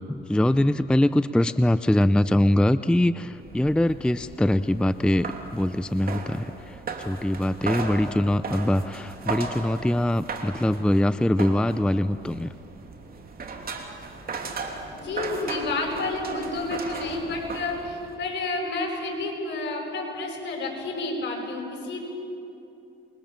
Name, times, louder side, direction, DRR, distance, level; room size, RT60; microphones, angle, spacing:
voice 1, 0.1-12.5, left 1 dB, 5° left, 13 dB, 0.5 m, -23 dB
sound 1, 3.3-18.2, right 4 dB, 50° right, 3.2 m, -37 dB
voice 2, 14.5-22.0, left 2 dB, 60° left, 0 dB, 7.8 m, -30 dB
28.0 x 22.5 x 7.5 m, 2.7 s
cardioid pair, 90°, 20 cm